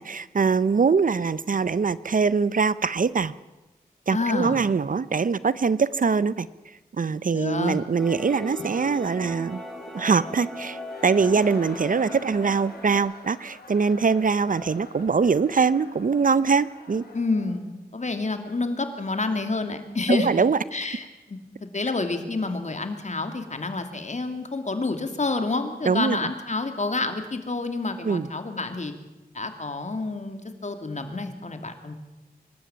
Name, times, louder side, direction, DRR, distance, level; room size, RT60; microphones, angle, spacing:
voice 1, 0.0-3.3 4.1-6.5 7.0-9.6 9.9-17.1 20.1-20.6 25.9-26.2 28.0-28.3, right 5 dB, 60° right, 18 dB, 0.7 m, -23 dB
voice 2, 4.1-4.6 7.3-7.8 17.1-20.4 20.7-21.4 21.7-28.9 29.3-31.9, left 3 dB, 50° left, 7 dB, 2.7 m, -28 dB
sound 1, 8.0-13.0, left 1 dB, 5° left, 5.8 m, -38 dB
Laughter, 10.8-17.6, left 3 dB, 80° left, 3.6 m, -47 dB
25.0 x 12.5 x 9.0 m, 1.1 s
cardioid pair, 55°, 16 cm